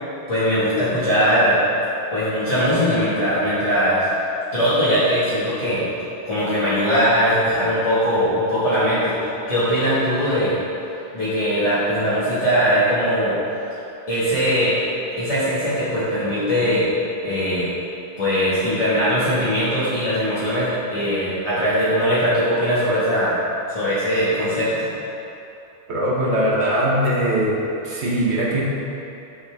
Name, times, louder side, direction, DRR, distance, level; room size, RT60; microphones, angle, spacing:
voice 1, 0.3-1.6 2.1-4.1 4.5-5.9 6.2-9.1 9.5-10.6 11.1-13.6 14.1-14.7 15.2-16.9 17.2-17.7 18.2-23.4 23.7-24.9, equal, 35° left, -14 dB, 1.5 m, -20 dB
voice 2, 25.9-27.6 27.8-28.6, right 1 dB, 75° right, -5 dB, 1.3 m, -20 dB
9.2 x 4.3 x 3.4 m, 2.9 s
omnidirectional pair, 1.1 m